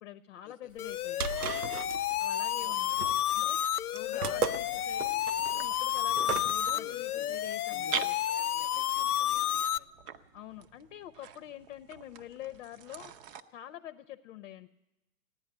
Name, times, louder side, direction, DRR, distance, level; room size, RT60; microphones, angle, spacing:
voice 1, 0.0-1.2 2.2-3.6 3.9-5.2 5.5-8.0 10.3-13.1 13.5-14.7, left 12 dB, 55° left, 12 dB, 0.8 m, -46 dB
sound 1, 0.8-9.8, left 11 dB, 85° left, 0.5 m, -31 dB
sound 2, 0.8-6.7, right 6 dB, 90° right, 0.6 m, -37 dB
voice 2, 2.3-3.1 3.4-3.7 4.1-4.9 6.2-6.3 6.7-7.4 7.7-9.9, left 12 dB, 20° left, 9 dB, 0.5 m, -50 dB
sound 3, 4.2-13.4, right 8 dB, 40° right, 0.8 m, -45 dB
15.5 x 10.5 x 8.8 m, 0.99 s
hypercardioid pair, 110°, 44 cm